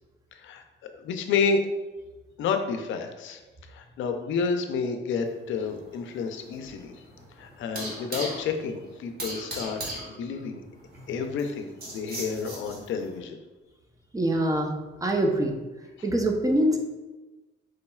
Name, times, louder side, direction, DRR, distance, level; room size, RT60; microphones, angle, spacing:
voice 1, 0.3-0.6 0.9-1.6 2.4-7.0 7.4-10.6 11.1-13.4, left 5 dB, 75° left, 6 dB, 0.5 m, -30 dB
sound 1, 5.3-13.1, right 1 dB, 50° right, 1.5 m, -39 dB
voice 2, 14.1-14.7 15.0-15.5 16.0-16.8, right 1 dB, 15° right, 2 dB, 0.6 m, -24 dB
4.9 x 4.0 x 2.3 m, 1.2 s
cardioid pair, 90°, 20 cm